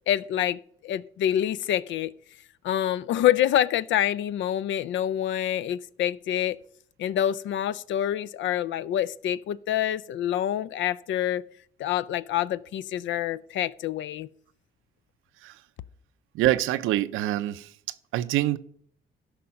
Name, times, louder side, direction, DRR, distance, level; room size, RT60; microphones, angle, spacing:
voice 1, 0.1-2.1 2.6-6.6 7.0-11.4 11.8-14.3, left 11 dB, 70° left, 0.5 m, -26 dB
voice 2, 16.3-17.7 18.1-18.6, right 15 dB, 90° right, 0.5 m, -25 dB
13.0 x 5.3 x 5.8 m
cardioid pair, 90°, 20 cm